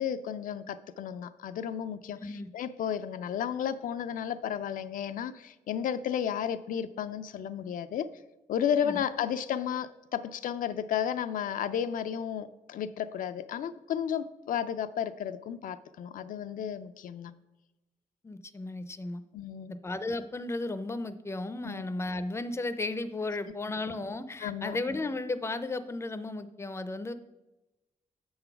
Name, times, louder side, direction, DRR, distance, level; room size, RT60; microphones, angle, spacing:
voice 1, 0.0-8.1 8.5-17.3 19.3-19.7 21.6-21.8 24.4-24.8, left 9 dB, 75° left, 12 dB, 0.4 m, -33 dB
voice 2, 18.2-19.2 19.8-27.1, left 2 dB, 20° left, 12 dB, 0.5 m, -34 dB
7.3 x 3.9 x 5.8 m, 1.0 s
cardioid pair, 95°, 14 cm